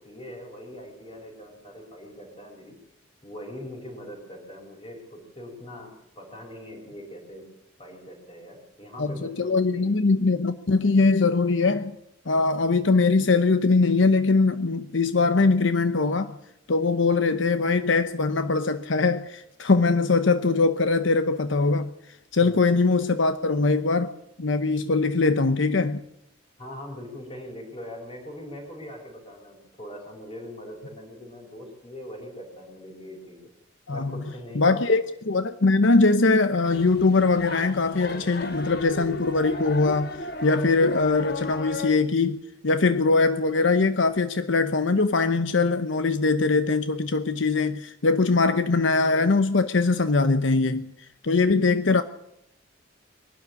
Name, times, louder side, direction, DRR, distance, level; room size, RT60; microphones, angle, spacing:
voice 1, 0.0-2.8 3.2-7.5 7.8-10.0 22.4-22.9 26.6-33.5 33.9-35.0, left 1 dB, 30° left, 5.1 m, -42 dB
voice 2, 9.0-11.9 12.3-16.4 16.7-21.9 22.3-26.0 33.9-34.2 34.5-50.9 51.2-52.0, left 3 dB, 75° left, 0.9 m, -22 dB
sound 1, 36.6-41.9, left 2 dB, 55° left, 1.5 m, -35 dB
23.0 x 12.5 x 9.6 m
head